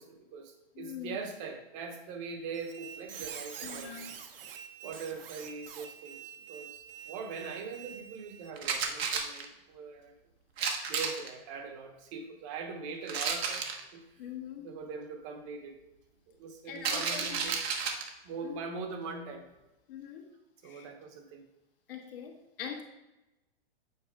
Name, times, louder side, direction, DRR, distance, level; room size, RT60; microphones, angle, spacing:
voice 1, 0.0-4.0 4.6-10.1 10.9-13.7 13.9-14.0 14.6-15.8 16.3-17.7 18.2-19.4 20.6-21.4, right 5 dB, 30° right, 5 dB, 0.9 m, -42 dB
voice 2, 0.7-1.2 3.6-4.1 14.2-14.7 16.6-17.4 18.4-18.6 19.9-20.3 20.6-20.9 21.9-22.8, left 8 dB, 60° left, 0 dB, 1.6 m, -42 dB
Squeak, 2.5-8.5, right 8 dB, 65° right, 0.9 m, -46 dB
sound 1, 8.6-9.4 10.6-11.3 13.1-13.8 16.7-18.1, right 5 dB, 85° right, 1.2 m, -32 dB
8.4 x 4.1 x 4.8 m, 0.97 s
supercardioid pair, 170°, 31 cm